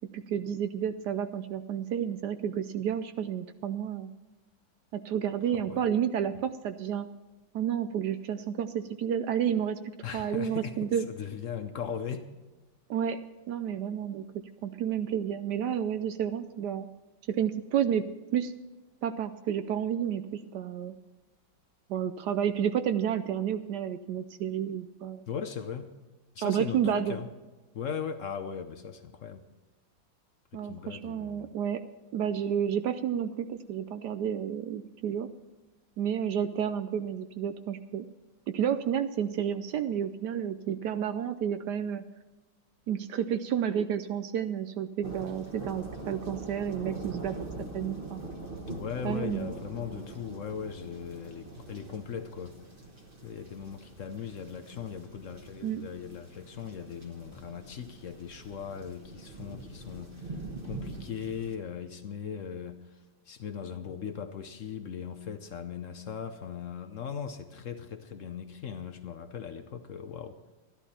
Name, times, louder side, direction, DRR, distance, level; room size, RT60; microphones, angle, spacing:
voice 1, 0.1-4.1 4.9-7.1 7.5-9.8 10.1-11.0 12.9-13.2 13.5-16.9 17.3-18.0 18.3-18.5 19.0-20.9 21.9-25.3 26.4-27.2 30.5-31.8 32.1-35.3 36.0-38.0 38.5-42.0 42.9-47.3 47.7-48.2 49.0-49.5 55.6-55.8, right 9 dB, 70° right, 11 dB, 1.0 m, -31 dB
voice 2, 10.0-12.3 25.3-25.9 26.4-27.3 27.7-29.4 30.5-31.5 48.7-52.6 53.2-63.0 63.3-70.4, left 7 dB, 60° left, 8 dB, 0.8 m, -39 dB
sound 1, 45.0-61.6, right 2 dB, 30° right, 1.3 m, -43 dB
13.0 x 12.0 x 4.2 m, 1.2 s
omnidirectional pair, 2.1 m